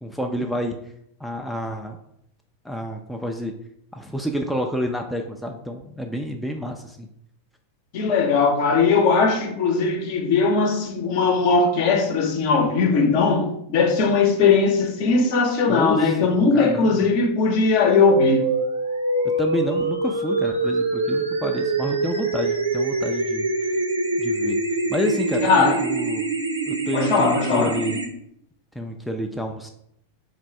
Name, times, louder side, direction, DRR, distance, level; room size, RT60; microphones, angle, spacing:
voice 1, 0.0-0.7 1.2-2.0 2.6-3.5 3.9-7.1 15.7-16.1 16.5-17.1 19.4-23.5 24.2-24.6 24.9-26.3 26.7-28.0 28.8-29.7, equal, ahead, 0.4 m, -29 dB
voice 2, 7.9-18.5 25.4-25.8 26.9-27.8, left 4 dB, 45° left, 0.7 m, -19 dB
sound 1, 18.1-28.1, right 2 dB, 80° right, 0.6 m, -24 dB
3.9 x 2.5 x 4.4 m
figure-of-eight pair, 90°, 0 cm